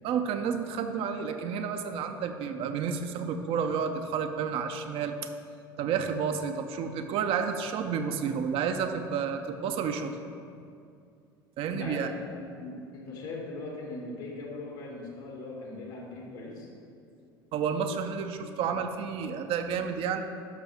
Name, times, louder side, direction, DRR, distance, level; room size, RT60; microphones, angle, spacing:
voice 1, 0.0-5.2 5.8-10.1 11.6-12.1 17.5-20.2, right 6 dB, 50° right, 6 dB, 0.7 m, -30 dB
voice 2, 11.6-16.7, left 2 dB, 65° left, -2 dB, 2.2 m, -40 dB
12.5 x 5.9 x 3.6 m, 2.5 s
figure-of-eight pair, 70°, 13 cm